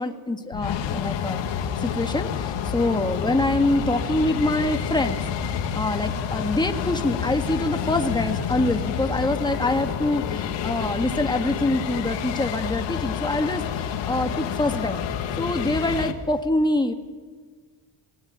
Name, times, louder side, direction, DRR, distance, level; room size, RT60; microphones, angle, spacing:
voice 1, 0.0-1.4 1.8-15.0 15.4-16.9, left 2 dB, 10° left, 5 dB, 1.9 m, -25 dB
sound 1, 0.5-16.1, left 8 dB, 90° left, 2.2 m, -28 dB
26.0 x 18.0 x 9.9 m, 1.5 s
cardioid pair, 125°, 43 cm